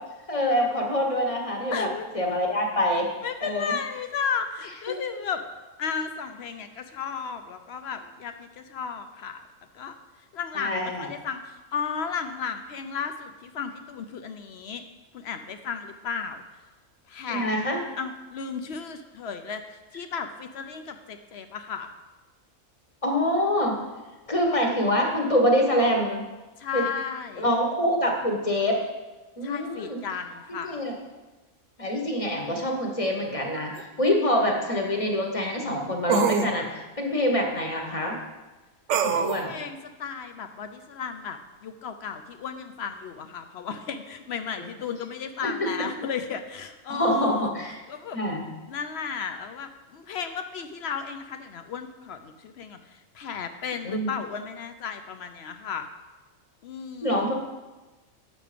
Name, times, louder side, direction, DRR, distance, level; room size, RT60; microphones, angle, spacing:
voice 1, 0.3-1.9 2.1-3.1 3.4-3.7 10.5-11.1 17.3-17.8 23.0-23.8 24.3-26.2 26.7-26.9 27.4-28.8 29.4-30.0 30.6-30.9 31.8-33.7 34.0-38.2 39.0-39.5 45.4-45.7 46.9-47.8 48.1-48.4 53.8-54.1 57.0-57.3, equal, 25° left, 1 dB, 1.2 m, -25 dB
voice 2, 1.7-2.1 3.2-5.4 5.8-9.4 9.7-9.9 10.3-14.8 15.1-16.4 17.1-17.5 18.0-21.9 26.6-27.4 29.4-30.8 39.1-47.5 47.9-48.2 48.7-55.9 56.6-57.3, left 6 dB, 60° left, 8 dB, 0.7 m, -34 dB
sound 1, 33.8-33.9 36.1-36.5 38.9-39.4, right 6 dB, 65° right, 0.9 m, -24 dB
7.8 x 6.4 x 5.0 m, 1.2 s
omnidirectional pair, 1.4 m